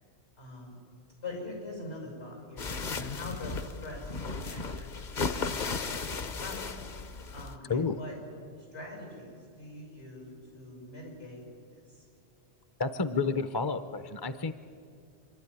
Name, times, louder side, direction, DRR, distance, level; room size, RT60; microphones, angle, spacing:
voice 1, 0.4-0.8 1.2-5.9 6.4-6.8 7.3-8.1 8.7-11.4 11.7-12.0, left 2 dB, 90° left, 0 dB, 6.6 m, -43 dB
sound 1, 2.6-7.6, left 4 dB, 45° left, 0.9 m, -35 dB
voice 2, 12.8-14.5, left 4 dB, 30° left, 11 dB, 0.5 m, -30 dB
25.5 x 12.5 x 9.7 m, 2.4 s
omnidirectional pair, 1.1 m